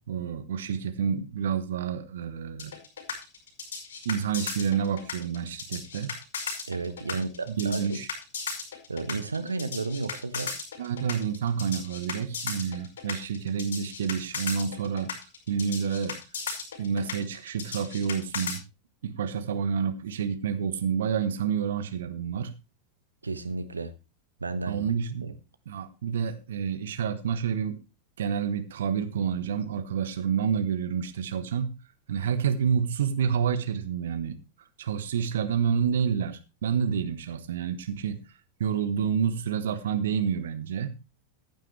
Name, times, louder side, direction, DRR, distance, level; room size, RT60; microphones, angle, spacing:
voice 1, 0.1-2.7 4.0-6.1 7.1-7.2 7.6-8.1 10.8-15.1 15.5-16.2 16.8-18.6 19.0-22.5 24.7-25.3 25.7-27.8 28.2-31.8 32.1-34.4 34.8-38.2 38.6-40.9, right 7 dB, 60° right, 11 dB, 1.2 m, -28 dB
sound 1, 2.6-18.6, left 5 dB, 60° left, 5.3 m, -36 dB
voice 2, 6.7-8.0 8.9-10.6 23.2-23.9 24.4-24.9 25.2-25.3, right 3 dB, 80° right, 10 dB, 1.2 m, -33 dB
15.0 x 9.2 x 3.3 m, 0.28 s
figure-of-eight pair, 90°, 0 cm